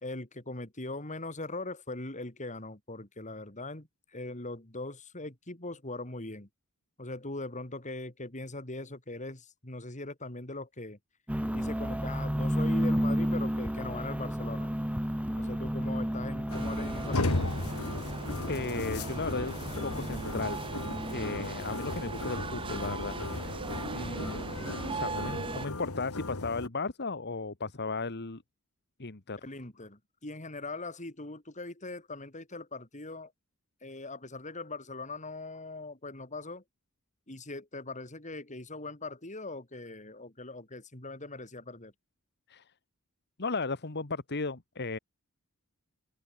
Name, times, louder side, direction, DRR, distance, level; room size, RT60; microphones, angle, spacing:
voice 1, 0.0-6.5 7.0-11.0 11.5-14.7 15.3-17.6 29.4-33.3 33.8-36.6 37.3-41.9, left 2 dB, 35° left, 4.3 m, -41 dB
sound 1, 11.3-21.5, equal, 5° right, 1.3 m, -33 dB
sound 2, 16.5-26.7, left 2 dB, 75° left, 1.8 m, -36 dB
sound 3, 16.5-25.7, right 3 dB, 25° right, 0.6 m, -39 dB
voice 2, 18.5-20.6 21.1-23.6 23.9-24.4 24.9-28.4 29.0-29.4 42.5-42.6 43.4-45.0, left 3 dB, 50° left, 1.6 m, -35 dB
head